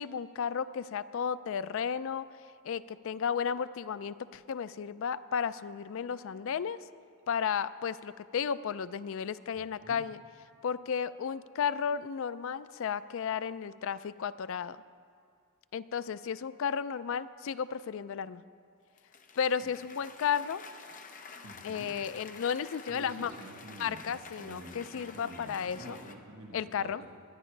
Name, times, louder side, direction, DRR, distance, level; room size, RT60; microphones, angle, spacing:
voice 1, 0.0-2.2 2.6-6.8 7.3-10.2 10.6-14.8 15.7-18.4 19.4-20.6 21.6-23.3 23.8-26.0 26.5-27.0, left 7 dB, 60° left, 15 dB, 0.4 m, -33 dB
voice 2, 9.5-10.0 19.6-19.7 21.4-21.9 22.7-27.1, right 1 dB, 65° right, -1 dB, 1.5 m, -49 dB
Cheering / Applause, 19.0-26.1, left 4 dB, 35° left, 0.7 m, -50 dB
19.5 x 11.0 x 3.3 m, 2.2 s
head